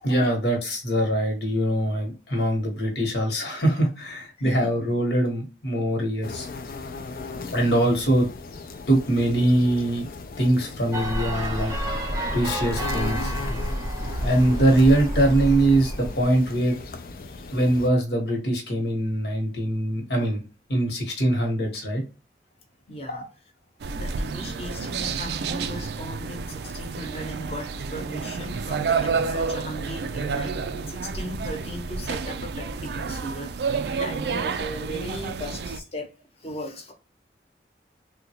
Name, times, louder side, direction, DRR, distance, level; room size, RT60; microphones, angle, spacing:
voice 1, 0.0-6.5 7.5-8.3 8.9-10.1 10.4-11.7 12.3-13.3 14.2-16.8 17.5-20.4 20.7-22.0 23.1-23.2, right 1 dB, 75° left, 2 dB, 1.2 m, -22 dB
voice 2, 4.4-4.7 7.3-7.9 17.3-17.5 22.9-23.3 23.9-33.5 33.9-36.1 36.4-36.9, equal, 35° left, 3 dB, 0.9 m, -37 dB
sound 1, 6.2-17.9, left 3 dB, 55° left, 0.4 m, -38 dB
sound 2, 10.9-16.2, equal, 20° right, 0.6 m, -29 dB
sound 3, 23.8-35.8, right 5 dB, 70° right, 0.3 m, -30 dB
3.5 x 2.2 x 2.8 m, 0.31 s
head